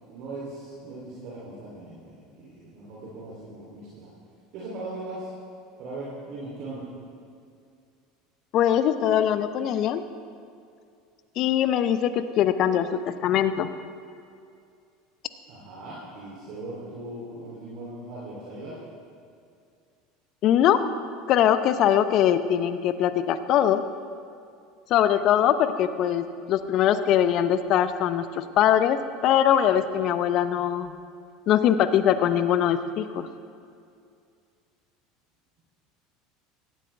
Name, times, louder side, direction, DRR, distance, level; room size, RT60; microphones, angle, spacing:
voice 1, 0.1-4.1 4.5-5.3 5.8-6.9 15.5-18.8, right 2 dB, 60° right, -6 dB, 2.9 m, -39 dB
voice 2, 8.5-10.0 11.4-13.7 20.4-20.9 21.3-23.8 24.9-29.0 29.2-30.9 31.5-33.3, left 10 dB, 50° left, 12 dB, 0.7 m, -22 dB
17.5 x 12.5 x 3.3 m, 2.4 s
hypercardioid pair, 80°, 0 cm